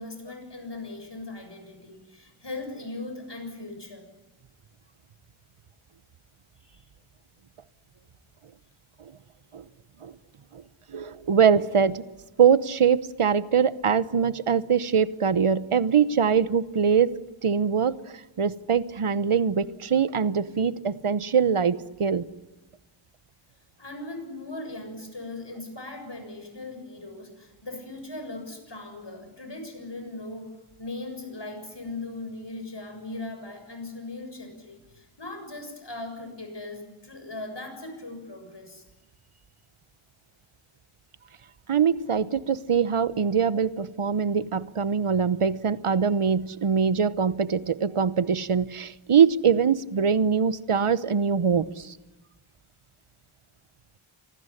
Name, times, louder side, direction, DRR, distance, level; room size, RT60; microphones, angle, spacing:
voice 1, 0.0-4.1 6.6-6.8 23.8-30.5 30.8-38.8, left 2 dB, 55° left, 6 dB, 7.1 m, -39 dB
voice 2, 10.9-12.0 12.4-17.1 17.4-18.0 18.4-22.3 41.7-52.0, right 6 dB, 90° right, 16 dB, 1.0 m, -23 dB
26.5 x 19.5 x 9.9 m, 1.0 s
wide cardioid pair, 50°, 49 cm